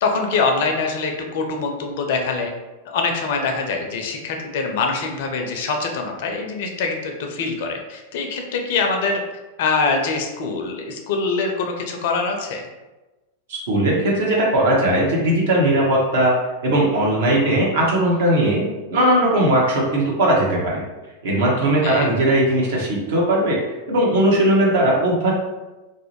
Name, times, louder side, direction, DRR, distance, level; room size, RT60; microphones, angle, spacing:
voice 1, 0.0-2.5 2.9-9.2 9.6-12.7 21.6-22.1, left 4 dB, 55° left, 3 dB, 0.4 m, -24 dB
voice 2, 13.5-16.3 16.6-18.6 18.9-20.8 21.2-25.3, right 1 dB, 55° right, -3 dB, 0.7 m, -18 dB
2.4 x 2.1 x 3.0 m, 1.1 s
figure-of-eight pair, 90°, 0 cm